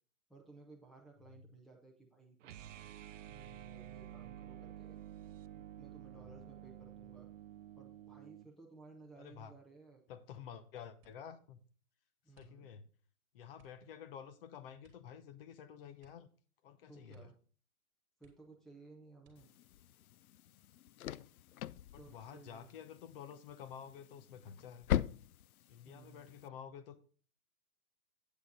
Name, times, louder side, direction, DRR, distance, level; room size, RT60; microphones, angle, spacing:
voice 1, 0.3-2.7 3.3-5.0 5.5-7.3 7.8-10.0 12.2-12.8 16.9-17.3 18.2-19.5 22.0-22.7 25.8-26.4, right 3 dB, ahead, 0.5 m, -58 dB
sound 1, 2.4-8.5, right 11 dB, 60° right, 0.6 m, -51 dB
voice 2, 9.2-9.5 10.1-11.6 12.3-12.9 13.3-16.3 16.6-17.3 21.9-24.9 25.7-27.0, left 8 dB, 40° left, 0.9 m, -51 dB
sound 2, 11.0-11.4 12.3-12.9 13.5-13.9 14.8-15.2 15.4-15.5 16.0-16.7 17.1-17.5 17.8-17.9 18.2-18.7 19.2-19.7 20.4-21.1 21.4-21.8, right 4 dB, 25° right, 2.2 m, -70 dB
sound 3, 19.4-26.5, left 11 dB, 75° left, 0.5 m, -42 dB
8.3 x 8.2 x 3.8 m
hypercardioid pair, 145°, 43 cm